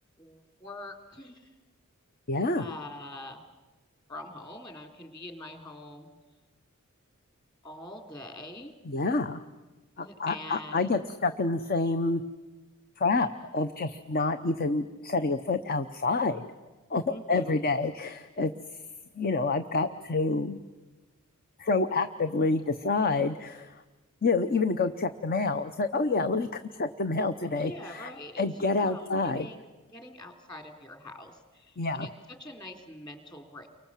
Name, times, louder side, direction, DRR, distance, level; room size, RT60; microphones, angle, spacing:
voice 1, 0.2-1.5 2.6-3.4 4.1-6.1 7.6-8.7 10.0-11.0 17.1-17.6 27.6-33.7, left 1 dB, 20° left, 4 dB, 3.2 m, -44 dB
voice 2, 2.3-2.6 8.9-9.4 10.0-12.2 13.0-16.4 16.9-18.5 19.2-20.6 21.6-23.8 24.2-28.1 28.4-29.5 31.8-32.1, left 3 dB, 45° left, 10 dB, 0.8 m, -28 dB
29.5 x 24.0 x 7.4 m, 1.2 s
head